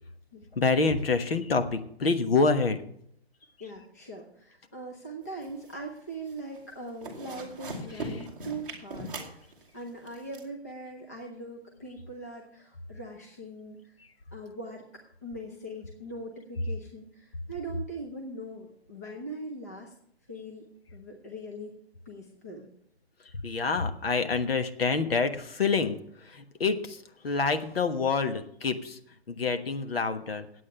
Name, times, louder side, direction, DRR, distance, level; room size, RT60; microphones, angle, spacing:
voice 1, 0.5-2.8 7.9-8.2 23.3-29.0 29.3-30.5, left 4 dB, 65° left, 8 dB, 1.3 m, -27 dB
voice 2, 3.6-9.4 9.7-13.9 14.3-14.8 15.2-19.9 20.3-20.6 20.9-21.7 22.1-22.7, right 1 dB, 15° left, 0 dB, 0.6 m, -41 dB
sound 1, 5.3-6.0 6.3-6.6 6.9-10.4, right 2 dB, 5° right, 1.1 m, -39 dB
9.4 x 8.5 x 6.8 m, 0.69 s
hypercardioid pair, 175°, 32 cm